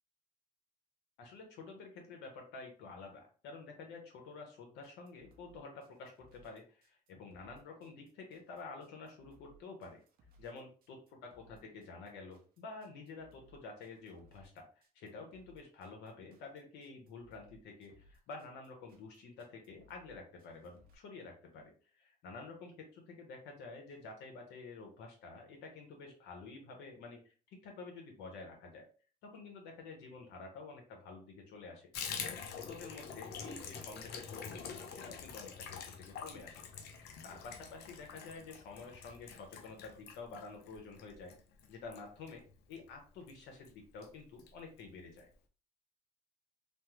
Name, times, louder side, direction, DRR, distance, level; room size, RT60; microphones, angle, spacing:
voice 1, 1.2-10.0 10.4-14.7 14.9-28.9 29.2-31.9 32.2-36.6 37.0-41.3 41.7-42.4 42.7-45.3, left 4 dB, 90° left, 2 dB, 1.0 m, -50 dB
sound 1, 4.8-20.9, right 1 dB, 60° right, 0.6 m, -65 dB
Water tap faucet / Bathtub (filling or washing), 31.9-42.9 43.2-43.4 43.6-43.7 44.0-44.5 44.8-44.9 45.2-45.3, left 6 dB, 75° left, 0.5 m, -46 dB
3.3 x 2.1 x 3.0 m, 0.38 s
cardioid pair, 110°, 17 cm